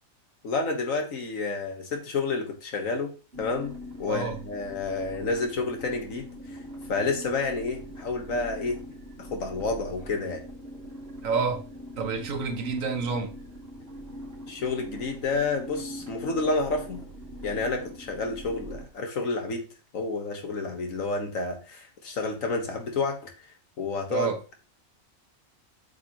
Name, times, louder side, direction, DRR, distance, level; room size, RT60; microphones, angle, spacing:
voice 1, 0.4-6.3 6.9-8.8 9.2-10.5 14.5-17.0 17.4-19.7 19.9-23.3 23.8-24.5, left 3 dB, 85° left, 1.9 m, -30 dB
sound 1, 3.3-18.9, equal, 50° right, 2.1 m, -42 dB
voice 2, 4.1-4.4 11.2-11.7 12.0-13.4 24.1-24.4, right 5 dB, 80° right, 1.4 m, -29 dB
8.1 x 6.0 x 3.0 m
omnidirectional pair, 1.4 m